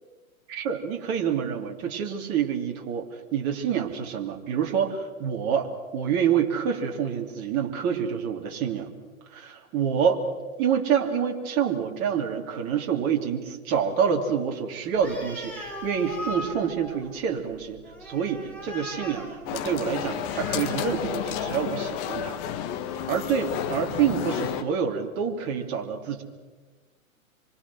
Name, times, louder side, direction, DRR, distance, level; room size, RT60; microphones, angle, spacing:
voice 1, 0.5-3.1 3.3-8.9 9.3-10.2 10.6-22.4 23.1-26.2, right 7 dB, 35° right, 2 dB, 3.1 m, -27 dB
Animal, 15.0-21.7, left 1 dB, 5° left, 5.5 m, -39 dB
sound 1, 19.5-24.6, left 9 dB, 30° left, 1.8 m, -31 dB
26.0 x 24.5 x 6.4 m, 1.3 s
figure-of-eight pair, 115°, 42 cm